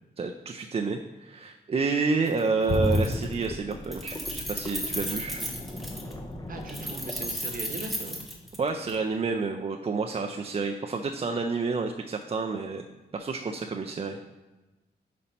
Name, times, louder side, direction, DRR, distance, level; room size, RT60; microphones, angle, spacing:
voice 1, 0.2-5.4 8.6-12.8 13.1-14.2, right 4 dB, 35° right, 3 dB, 0.4 m, -29 dB
Keys jangling, 2.3-2.4 2.7-3.5 3.7-6.1 6.7-8.9, equal, ahead, 1.0 m, -35 dB
sound 1, 2.7-8.5 8.9-9.0, left 1 dB, 20° left, 0.6 m, -34 dB
voice 2, 6.5-8.2 10.1-10.3, right 3 dB, 50° right, 4 dB, 0.9 m, -39 dB
5.7 x 4.2 x 5.1 m, 1.1 s
wide cardioid pair, 145°, 18 cm